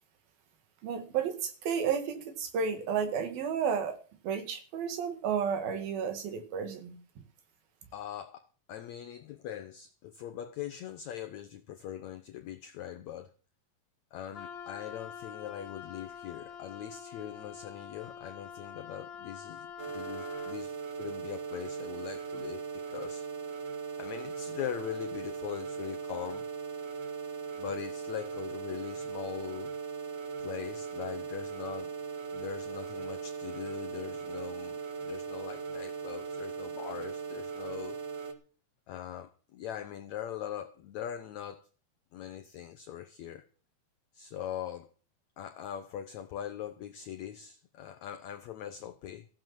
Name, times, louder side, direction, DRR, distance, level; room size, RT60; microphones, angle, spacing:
voice 1, 0.8-4.0 4.2-7.0, right 7 dB, 75° right, 3.7 m, -32 dB
voice 2, 7.9-13.3 14.1-23.3 24.0-26.4 27.5-29.7 30.4-31.9 32.3-38.0 38.9-41.7 42.1-43.5 44.1-44.9 45.4-49.3, left 10 dB, 85° left, 1.6 m, -41 dB
Wind instrument woodwind instrument, 14.3-20.6, left 7 dB, 60° left, 2.2 m, -46 dB
sound 1, 19.8-38.3, right 6 dB, 50° right, 2.6 m, -39 dB
15.5 x 7.8 x 7.3 m
omnidirectional pair, 4.3 m